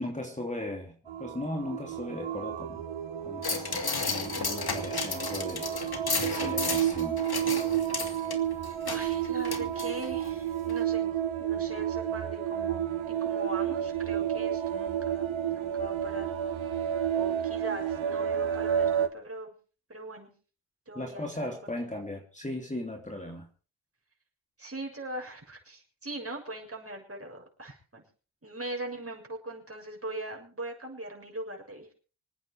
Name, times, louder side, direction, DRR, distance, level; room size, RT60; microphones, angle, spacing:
voice 1, 0.0-2.8 3.2-5.7 6.2-7.2 20.9-23.5, left 1 dB, 15° left, 1 dB, 3.1 m, -37 dB
sound 1, 1.1-19.1, right 9 dB, 80° right, 1.6 m, -31 dB
sound 2, 3.4-10.3 10.7-10.8, left 4 dB, 50° left, 2.8 m, -34 dB
voice 2, 8.9-16.7 17.1-19.5 19.9-20.3 20.9-21.5 21.8-21.9 24.6-28.0 28.4-31.9, right 1 dB, 30° right, 1 dB, 7.0 m, -41 dB
26.5 x 9.2 x 4.9 m, 0.38 s
wide cardioid pair, 95°, 47 cm